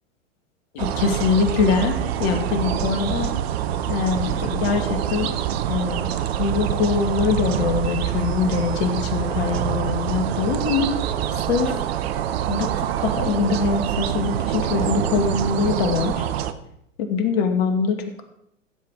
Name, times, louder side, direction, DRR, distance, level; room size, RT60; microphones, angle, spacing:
voice 1, 0.7-3.3 3.9-5.3 5.7-6.1 6.4-10.9 11.5-11.8 12.5-16.3 17.0-18.2, left 5 dB, 50° left, 7 dB, 2.3 m, -23 dB
sound 1, 0.8-16.5, right 10 dB, 50° right, 1.0 m, -25 dB
15.5 x 7.8 x 4.7 m, 0.76 s
figure-of-eight pair, 105°, 39 cm